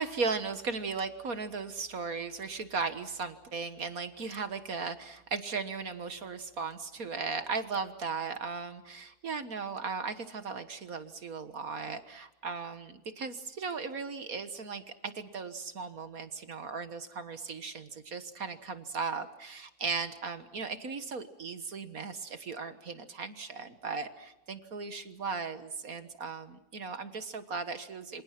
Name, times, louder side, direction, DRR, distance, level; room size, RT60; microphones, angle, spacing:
voice 1, 0.0-28.2, right 4 dB, 50° right, 10 dB, 1.7 m, -37 dB
27.5 x 27.0 x 6.0 m, 0.94 s
omnidirectional pair, 2.0 m